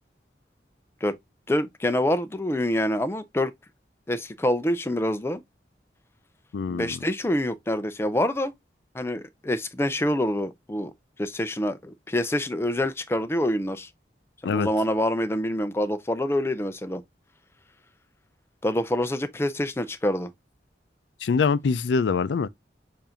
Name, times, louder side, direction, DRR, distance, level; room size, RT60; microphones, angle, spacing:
voice 1, 1.5-3.5 4.1-5.4 6.7-8.5 8.9-10.9 11.2-13.9 14.4-17.0 18.6-20.3, left 1 dB, 15° left, 0.4 m, -26 dB
voice 2, 6.5-7.0 14.4-14.7 21.2-22.5, left 5 dB, 85° left, 0.4 m, -24 dB
6.8 x 2.6 x 2.8 m
head